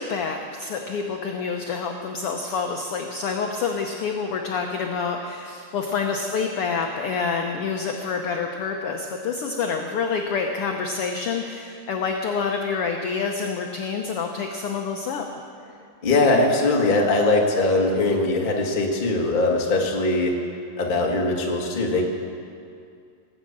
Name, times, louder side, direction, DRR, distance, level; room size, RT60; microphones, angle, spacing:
voice 1, 0.0-15.2, left 5 dB, 75° left, 3 dB, 1.3 m, -27 dB
voice 2, 16.0-20.4 20.8-22.0, left 2 dB, 30° left, 0 dB, 0.9 m, -21 dB
19.0 x 7.6 x 8.6 m, 2.4 s
omnidirectional pair, 3.6 m